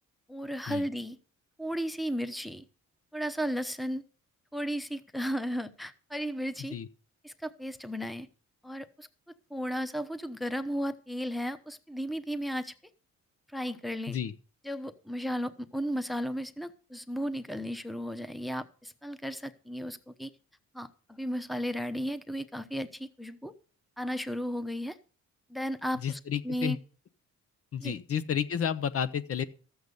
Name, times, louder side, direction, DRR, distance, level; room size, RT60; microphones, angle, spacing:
voice 1, 0.3-1.2 1.6-2.6 3.1-4.0 4.5-6.8 7.2-8.3 8.6-12.7 13.5-14.2 14.6-20.3 20.7-23.5 24.0-25.0 25.5-26.8 27.8-27.9, equal, ahead, 0.9 m, -34 dB
voice 2, 26.0-26.8 27.7-29.4, left 8 dB, 50° left, 0.8 m, -31 dB
13.0 x 8.1 x 5.3 m
cardioid pair, 90°, 30 cm